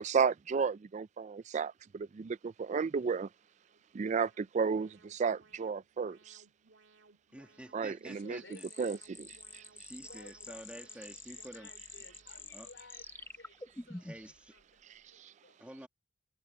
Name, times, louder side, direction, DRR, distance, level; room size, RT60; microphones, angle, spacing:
voice 1, 0.0-3.3 3.9-6.4 7.7-8.4 8.8-9.0 9.5-9.6 15.2-15.3, right 5 dB, 40° right, 0.3 m, -33 dB
Alarm, 3.3-13.2, right 3 dB, 80° right, 2.1 m, -65 dB
voice 2, 7.3-8.7 9.7-11.7 12.5-12.7 14.0-14.5 15.6-15.9, right 1 dB, 5° right, 1.5 m, -49 dB
voice 3, 8.0-9.0 10.0-15.6, left 3 dB, 80° left, 4.7 m, -58 dB
sound 1, 8.5-14.4, left 2 dB, 10° left, 0.9 m, -48 dB
head